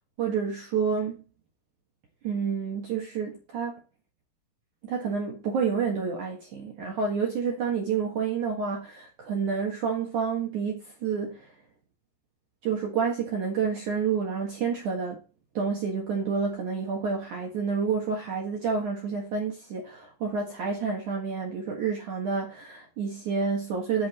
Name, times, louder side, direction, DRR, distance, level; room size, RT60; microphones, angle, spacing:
voice 1, 0.2-1.2 2.2-3.8 4.8-11.5 12.6-15.2 15.5-24.1, right 6 dB, 55° right, 2.6 m, -29 dB
8.1 x 8.0 x 4.4 m
omnidirectional pair, 4.8 m